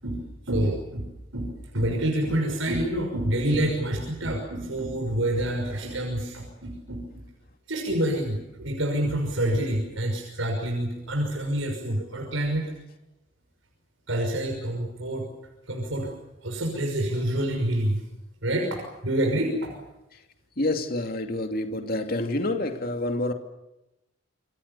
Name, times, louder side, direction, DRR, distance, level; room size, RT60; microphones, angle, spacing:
voice 1, 0.0-7.0 7.7-12.7 14.1-15.2 15.7-16.1 16.4-18.0 18.4-19.8, right 1 dB, 80° right, 2 dB, 6.0 m, -27 dB
voice 2, 20.6-23.3, left 2 dB, 50° left, 5 dB, 2.7 m, -28 dB
27.5 x 25.0 x 7.0 m, 0.93 s
head